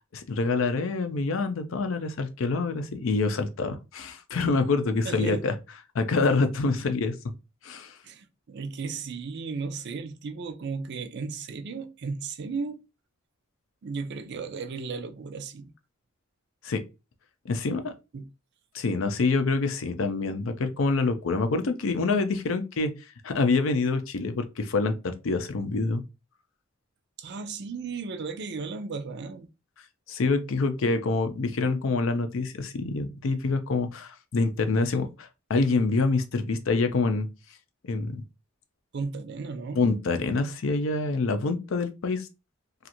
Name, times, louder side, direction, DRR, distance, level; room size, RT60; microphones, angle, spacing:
voice 1, 0.1-5.5 5.9-7.1 7.6-7.9 16.6-16.8 17.5-17.9 18.7-22.9 23.2-26.0 30.1-37.3 37.9-38.2 39.8-42.3, left 3 dB, 70° left, 0.5 m, -26 dB
voice 2, 5.1-5.5 8.0-12.8 13.8-15.7 18.1-18.3 27.2-29.5 38.9-39.8, right 4 dB, 55° right, 0.4 m, -35 dB
2.5 x 2.4 x 2.7 m
head